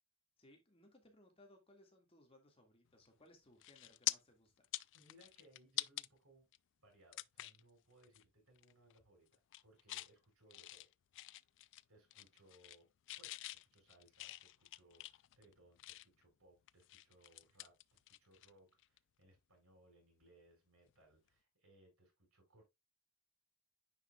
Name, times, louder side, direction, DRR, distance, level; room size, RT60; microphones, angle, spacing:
voice 1, 0.4-4.7, left 1 dB, 25° left, 1.9 m, -65 dB
sound 1, 3.1-3.3 3.6-4.1 4.6-6.1 6.5-6.6 7.1-7.6 8.0-8.2 8.6-9.0 9.3-10.1 10.5-11.8 12.1-12.8 13.1-16.2 16.7-18.5 18.8-19.0 20.9-21.0, left 17 dB, 60° left, 0.3 m, -45 dB
voice 2, 4.9-6.5 6.8-10.9 11.3-11.4 11.9-12.9 13.2-22.6, right 1 dB, 75° right, 4.7 m, -68 dB
9.7 x 5.2 x 2.3 m
head